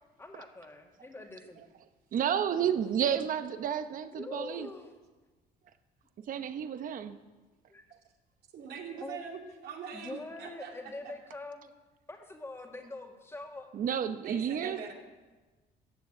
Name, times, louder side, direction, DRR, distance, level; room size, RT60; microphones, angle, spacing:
voice 1, 0.2-1.6 4.2-4.9 7.7-7.8 9.0-9.2 9.9-11.7 12.1-13.7, left 2 dB, 15° left, 2 dB, 2.0 m, -44 dB
voice 2, 2.1-4.7 6.3-7.2 13.7-14.8, right 8 dB, 55° right, 10 dB, 1.0 m, -31 dB
voice 3, 8.5-10.7 11.0-11.1 14.2-14.9, right 6 dB, 70° right, 1 dB, 2.6 m, -42 dB
14.0 x 7.1 x 8.9 m, 1.2 s
cardioid pair, 110°, 17 cm